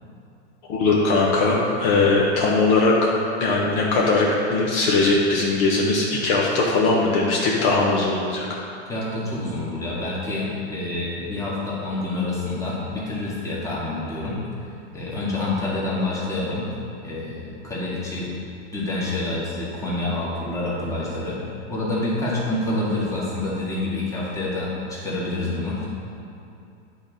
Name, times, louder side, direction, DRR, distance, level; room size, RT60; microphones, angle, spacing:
voice 1, 0.7-2.9 3.4-8.5, left 3 dB, 50° left, -3 dB, 1.2 m, -20 dB
voice 2, 8.9-14.4 14.9-16.7 17.0-18.3 18.7-21.4 21.7-25.9, left 2 dB, 10° left, -7 dB, 1.8 m, -27 dB
8.5 x 4.2 x 5.1 m, 2.7 s
supercardioid pair, 135°, 34 cm